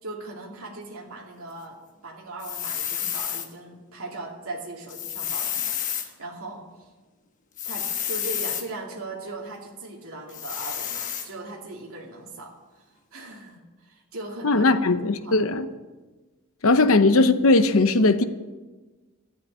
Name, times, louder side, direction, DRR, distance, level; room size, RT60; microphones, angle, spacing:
voice 1, 0.0-6.9 7.7-12.8 13.1-14.7 15.2-15.4 16.7-16.8, right 2 dB, 85° right, 2.5 m, -39 dB
sound 1, 2.4-3.5 4.9-6.1 7.6-8.7 10.3-11.3, left 9 dB, 35° left, 1.2 m, -30 dB
voice 2, 14.4-15.7 16.6-18.2, left 2 dB, 80° left, 0.8 m, -19 dB
12.0 x 9.2 x 8.6 m
head